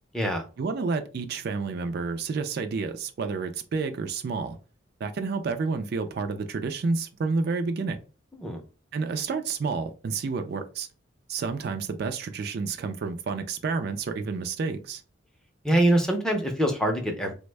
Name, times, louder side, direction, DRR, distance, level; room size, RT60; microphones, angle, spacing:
voice 1, 0.6-4.6 5.0-8.0 8.9-10.9 11.3-15.0, right 4 dB, 55° right, 0.3 m, -30 dB
voice 2, 15.6-17.3, right 1 dB, 5° left, 0.5 m, -24 dB
3.4 x 2.1 x 3.2 m
head